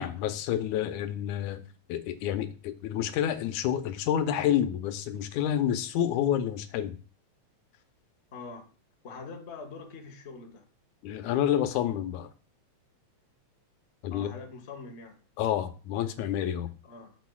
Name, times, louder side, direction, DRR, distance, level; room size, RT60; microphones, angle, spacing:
voice 1, 0.0-1.6 1.9-7.0 11.0-12.3 14.0-14.3 15.4-16.7, left 10 dB, 85° left, 2.1 m, -29 dB
voice 2, 8.3-8.7 9.0-10.7 14.1-15.2 16.8-17.2, left 4 dB, 70° left, 0.6 m, -43 dB
10.5 x 6.8 x 2.3 m
omnidirectional pair, 3.4 m